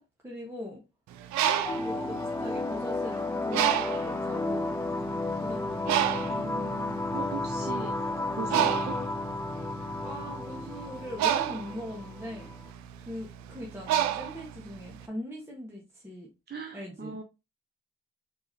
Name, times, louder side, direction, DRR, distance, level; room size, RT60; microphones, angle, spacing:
voice 1, 0.2-0.8 1.4-4.8 5.4-6.7 8.5-8.8 10.0-12.5 13.0-16.3 16.7-17.2, left 1 dB, 10° right, 1.5 m, -41 dB
Bird, 1.1-3.0 3.5-4.2 4.9-5.0 5.3-15.0, right 11 dB, 70° right, 0.5 m, -29 dB
sound 1, 1.6-12.6, left 2 dB, 10° left, 0.5 m, -33 dB
voice 2, 6.3-8.0 8.3-9.0 16.5-17.2, right 5 dB, 35° right, 0.8 m, -39 dB
4.7 x 2.9 x 2.8 m
hypercardioid pair, 45°, 29 cm